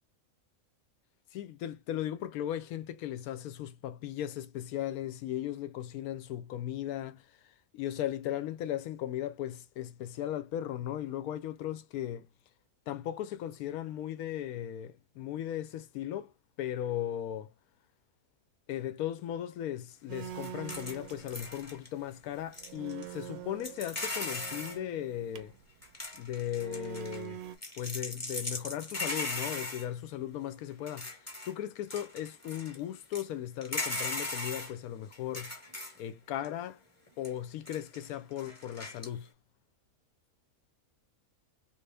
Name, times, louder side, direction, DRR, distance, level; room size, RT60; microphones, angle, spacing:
voice 1, 1.3-12.3 12.9-16.3 16.6-17.5 18.7-25.5 26.1-27.4 27.8-35.5 36.0-36.8 37.2-39.3, left 11 dB, 90° left, 1.0 m, -37 dB
sound 1, 20.1-21.7 22.2-22.3 22.6-25.6 26.5-27.6, right 12 dB, 75° right, 1.0 m, -45 dB
sound 2, 20.4-21.9 22.5-23.0 23.6-24.8 25.8-27.2 27.6-29.9 30.9-31.5 31.9-32.8 33.1-33.2 33.6-34.7 35.1-36.0 36.4-36.5 37.1-37.3 37.7-38.1 38.4-39.1, left 2 dB, 15° left, 0.8 m, -38 dB
3.2 x 2.5 x 3.3 m
omnidirectional pair, 1.5 m